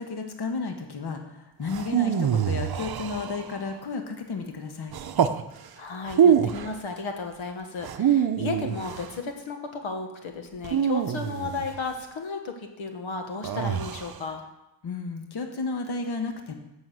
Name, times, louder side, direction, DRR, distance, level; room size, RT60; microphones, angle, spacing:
voice 1, 0.0-4.9 14.8-16.5, left 4 dB, 55° left, 4 dB, 1.4 m, -33 dB
sound 1, 1.7-3.7 4.9-5.4 6.1-6.8 7.8-9.2 10.6-11.9 13.4-14.2, right 8 dB, 50° right, 0.7 m, -25 dB
voice 2, 5.7-14.4, left 4 dB, 80° left, 4 dB, 1.4 m, -34 dB
11.0 x 6.4 x 7.8 m, 0.91 s
wide cardioid pair, 140°, 47 cm